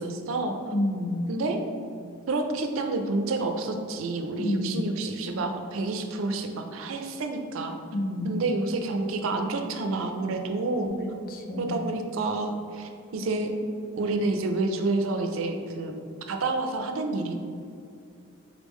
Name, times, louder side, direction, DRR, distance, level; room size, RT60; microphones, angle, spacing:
voice 1, 0.0-0.7 1.3-1.6 2.3-7.7 8.2-10.9 11.6-13.6 14.0-15.9 16.3-17.4, right 2 dB, 75° right, 5 dB, 0.4 m, -29 dB
voice 2, 0.7-1.3 4.4-4.8 7.9-8.4 10.9-11.0 11.3-11.8, left 1 dB, 45° left, 2 dB, 0.5 m, -29 dB
3.8 x 3.5 x 3.1 m, 2.4 s
head